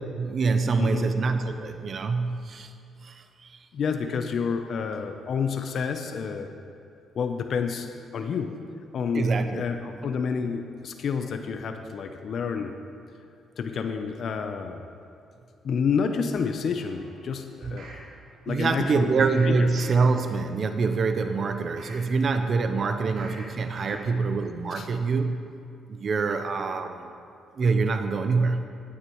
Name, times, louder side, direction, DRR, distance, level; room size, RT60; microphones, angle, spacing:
voice 1, 0.2-2.7 3.0-3.6 9.1-9.6 10.0-10.1 17.6-17.8 18.5-25.4 25.9-27.1 27.6-28.7, right 4 dB, 50° right, 8 dB, 0.7 m, -25 dB
voice 2, 3.7-6.5 7.2-7.9 8.1-8.6 8.9-12.7 13.6-14.8 15.6-17.9 18.5-19.1 19.4-19.7 23.9-24.0 24.7-24.9, left 6 dB, 60° left, 6 dB, 0.7 m, -29 dB
sound 1, 16.8-18.0 18.8-19.4 19.8-20.3 20.7-22.0 22.8-23.4 23.8-24.3 24.7-24.8, right 2 dB, 70° right, 2.9 m, -47 dB
16.5 x 9.8 x 3.1 m, 2.5 s
cardioid pair, 90°, 0 cm